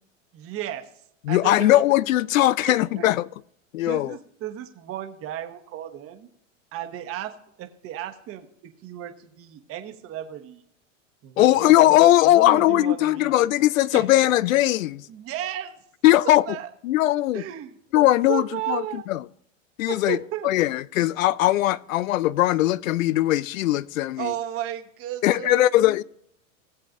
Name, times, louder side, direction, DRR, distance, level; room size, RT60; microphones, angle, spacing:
voice 1, 0.3-0.9 1.3-1.8 2.7-3.1 3.9-6.3 6.7-10.6 11.2-12.0 12.2-13.4 13.9-14.0 15.1-15.8 16.2-16.7 17.3-17.7 18.3-19.0 19.9-20.5 24.2-25.7, right 11 dB, 35° right, 1.2 m, -34 dB
voice 2, 1.2-3.3 3.7-4.2 11.4-15.1 16.0-16.6 16.8-17.4 17.9-19.3 19.8-20.2 20.4-24.3 25.2-26.0, left 15 dB, 80° left, 0.5 m, -20 dB
19.5 x 7.5 x 2.6 m
hypercardioid pair, 110°, 39 cm